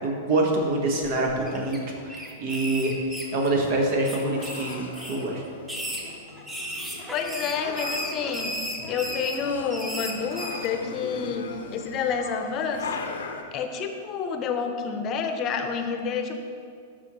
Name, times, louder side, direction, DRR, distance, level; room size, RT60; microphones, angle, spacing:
voice 1, 0.0-2.9 3.3-5.4, right 2 dB, 55° right, 0 dB, 1.5 m, -26 dB
sound 1, 1.0-1.8 2.1-3.7 4.0-5.2 5.6-10.7, equal, 10° right, 1.2 m, -35 dB
sound 2, 2.5-13.4, left 4 dB, 80° left, 0.7 m, -40 dB
voice 2, 7.1-12.9 13.5-16.4, left 6 dB, 40° left, 6 dB, 0.8 m, -29 dB
12.5 x 4.4 x 3.1 m, 2.3 s
hypercardioid pair, 105°, 0 cm